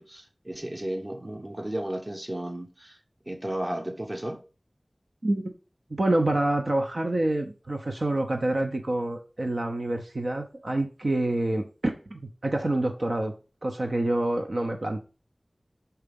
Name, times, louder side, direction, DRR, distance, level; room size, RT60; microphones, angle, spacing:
voice 1, 0.0-3.0 3.3-4.4, right 1 dB, 35° right, 1.2 m, -34 dB
voice 2, 5.2-5.5 5.9-13.4 13.6-15.0, right 1 dB, 70° right, 0.8 m, -27 dB
5.7 x 4.8 x 5.3 m
wide cardioid pair, 45°, 0 cm